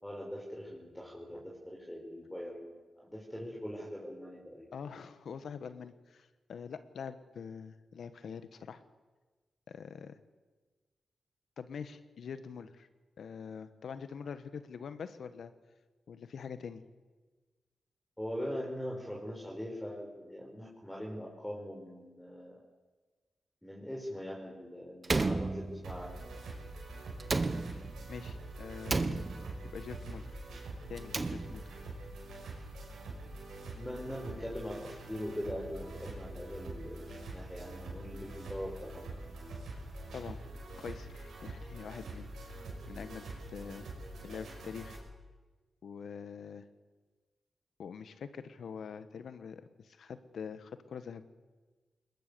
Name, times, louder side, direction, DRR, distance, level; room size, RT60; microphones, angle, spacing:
voice 1, 0.0-4.7 18.2-22.5 23.6-26.1 29.1-29.3 33.7-39.0, equal, 10° left, -3 dB, 4.9 m, -42 dB
voice 2, 4.7-8.8 9.7-10.2 11.6-12.9 13.2-15.5 16.1-16.8 28.1-29.3 29.7-30.3 30.9-31.8 40.1-40.4 40.8-43.2 43.5-43.9 44.2-45.0 45.8-46.6 47.8-51.3, left 6 dB, 75° left, 12 dB, 1.4 m, -44 dB
Slam, 25.0-26.2 27.2-28.1 28.9-29.8 30.9-31.8, right 3 dB, 35° right, 1.4 m, -33 dB
sound 1, 25.8-45.0, right 2 dB, 85° right, 5.7 m, -45 dB
22.0 x 20.5 x 6.9 m, 1.3 s
cardioid pair, 55°, 0 cm